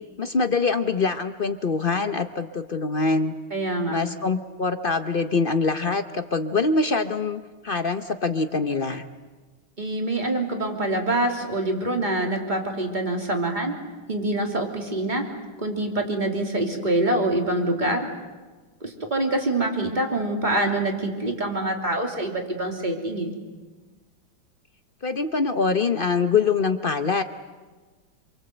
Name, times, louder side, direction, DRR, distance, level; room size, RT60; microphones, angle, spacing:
voice 1, 0.2-3.3 3.9-9.0 25.0-27.2, left 4 dB, 60° left, 8 dB, 0.5 m, -24 dB
voice 2, 3.5-4.0 9.8-13.8 14.1-15.3 15.6-18.1 18.8-23.3, right 1 dB, 20° right, 2 dB, 3.2 m, -25 dB
27.0 x 24.0 x 7.9 m, 1.3 s
omnidirectional pair, 2.3 m